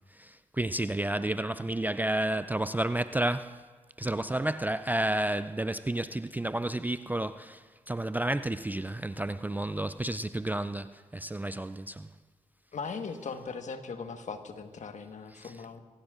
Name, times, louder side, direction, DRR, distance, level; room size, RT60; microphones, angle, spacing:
voice 1, 0.1-3.6 4.0-12.1 15.4-15.5, right 1 dB, 10° right, 0.4 m, -31 dB
voice 2, 12.7-15.8, left 5 dB, 55° left, 1.4 m, -39 dB
23.5 x 17.0 x 2.5 m
hypercardioid pair, 40°, 15 cm